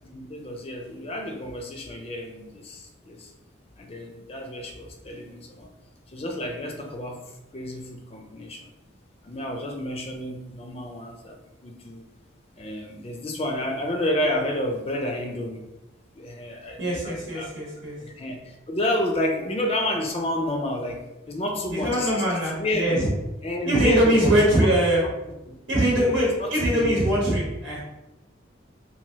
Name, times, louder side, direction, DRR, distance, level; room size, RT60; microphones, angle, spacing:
voice 1, 0.0-3.3 3.8-5.7 6.1-8.7 9.2-12.0 12.6-15.7 16.2-17.5 18.0-21.0 21.3-23.1 23.4-24.7 25.0-25.1 25.5-25.6 26.0-27.0, left 1 dB, 30° left, 2 dB, 0.4 m, -30 dB
voice 2, 16.8-18.0 21.7-23.0 23.6-25.0 25.7-27.8, equal, 80° right, -5 dB, 0.9 m, -22 dB
3.0 x 2.5 x 2.8 m, 0.97 s
head